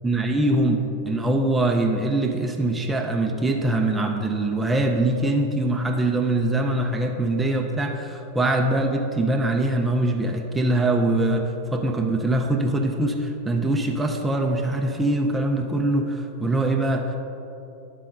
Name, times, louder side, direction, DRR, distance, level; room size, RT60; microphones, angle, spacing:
voice 1, 0.0-17.2, right 2 dB, 10° right, 2 dB, 0.6 m, -23 dB
12.0 x 4.2 x 3.7 m, 2.9 s
figure-of-eight pair, 90°, 0 cm